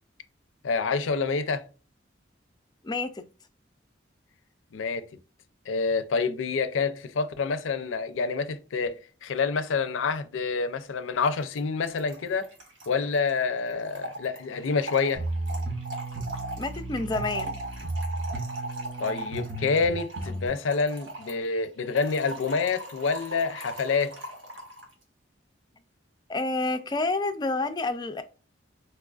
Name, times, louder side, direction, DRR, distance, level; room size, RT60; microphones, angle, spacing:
voice 1, 0.6-1.6 4.7-5.0 5.7-8.9 9.2-12.5 12.9-15.2 19.0-24.1, left 4 dB, 85° left, 0.4 m, -27 dB
voice 2, 2.8-3.2 16.6-17.6 26.3-28.2, left 3 dB, 20° left, 0.3 m, -29 dB
Trickle dribble / Fill (with liquid), 11.2-11.3 11.5-11.6 11.8-24.9, right 2 dB, 85° right, 1.4 m, -39 dB
sound 1, 15.1-20.5, right 2 dB, 70° right, 0.7 m, -34 dB
4.3 x 2.4 x 2.3 m
head